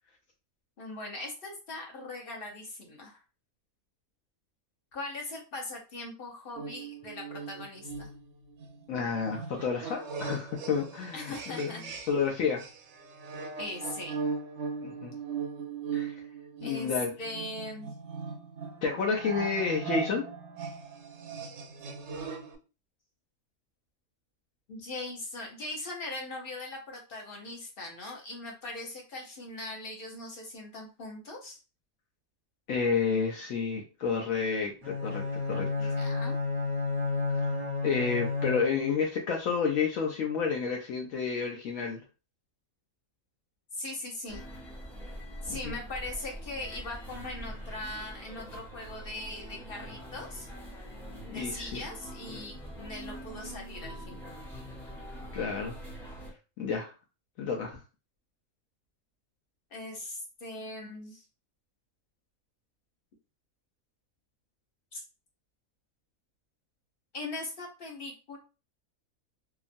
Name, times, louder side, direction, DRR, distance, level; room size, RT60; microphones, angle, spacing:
voice 1, 0.8-3.2 4.9-8.1 11.1-11.8 13.6-14.2 16.6-16.9 17.2-17.9 24.7-31.6 35.8-36.4 43.7-44.4 45.4-50.5 51.3-54.2 59.7-61.2 64.9-65.0 67.1-68.4, left 2 dB, 45° left, 0 dB, 0.9 m, -40 dB
sound 1, 6.6-12.3 12.6-22.6, right 5 dB, 65° right, 0.7 m, -39 dB
voice 2, 8.9-12.6 14.8-15.1 15.9-16.1 16.6-17.1 18.8-20.3 32.7-36.0 37.8-42.0 45.5-45.7 51.3-51.8 55.3-55.8 56.6-56.9 57.4-57.8, left 5 dB, 70° left, 1 dB, 1.0 m, -30 dB
Bowed string instrument, 34.8-39.0, left 3 dB, 35° right, 0.7 m, -31 dB
sound 2, 44.3-56.3, equal, ahead, 0.4 m, -43 dB
2.9 x 2.4 x 2.5 m, 0.32 s
omnidirectional pair, 1.5 m